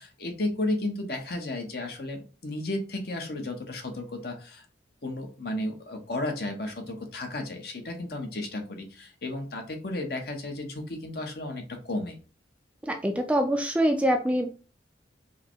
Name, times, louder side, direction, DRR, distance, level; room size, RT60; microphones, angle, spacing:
voice 1, 0.0-4.6 5.0-12.2, left 2 dB, 55° left, 4 dB, 1.0 m, -33 dB
voice 2, 12.8-14.5, equal, 5° right, 4 dB, 0.4 m, -24 dB
4.8 x 2.2 x 4.5 m, 0.35 s
head